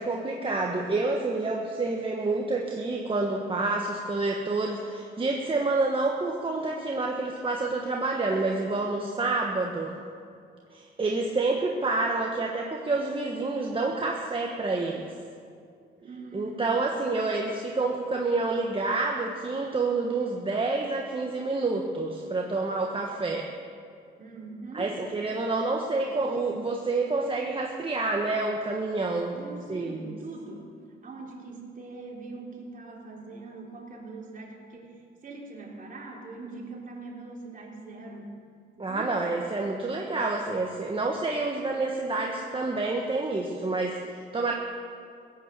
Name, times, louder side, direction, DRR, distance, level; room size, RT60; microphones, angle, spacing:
voice 1, 0.0-9.9 10.7-15.1 16.3-23.5 24.7-29.4 29.7-30.2 38.8-44.5, right 3 dB, 25° right, 0 dB, 1.5 m, -28 dB
voice 2, 16.0-16.8 24.2-24.9 26.0-26.2 29.3-30.7 31.0-38.4 38.8-39.3, right 3 dB, 45° right, -2 dB, 3.8 m, -42 dB
17.0 x 9.5 x 7.5 m, 2.3 s
cardioid pair, 90°, 20 cm